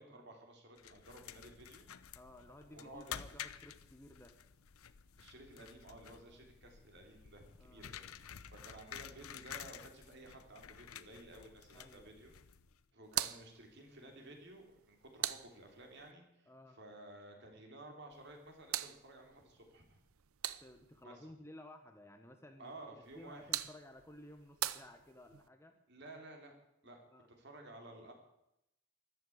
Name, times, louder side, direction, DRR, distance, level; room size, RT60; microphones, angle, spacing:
voice 1, 0.0-1.9 2.7-3.2 5.2-12.3 12.9-16.5 16.8-20.0 21.0-21.1 22.6-23.5 25.9-26.6 26.8-27.0 27.4-28.1, right 1 dB, 50° right, 3 dB, 3.5 m, -54 dB
sound 1, 0.8-12.8, left 9 dB, 75° left, 0.8 m, -51 dB
voice 2, 2.1-4.4 6.3-6.4 7.6-7.9 11.7-12.2 16.5-16.8 20.6-25.8 26.8-27.3, left 1 dB, 10° left, 5 dB, 1.1 m, -56 dB
sound 2, 13.0-16.1 18.1-21.0 23.0-25.5, right 13 dB, 70° right, 0.6 m, -43 dB
14.0 x 13.0 x 8.0 m, 0.82 s
head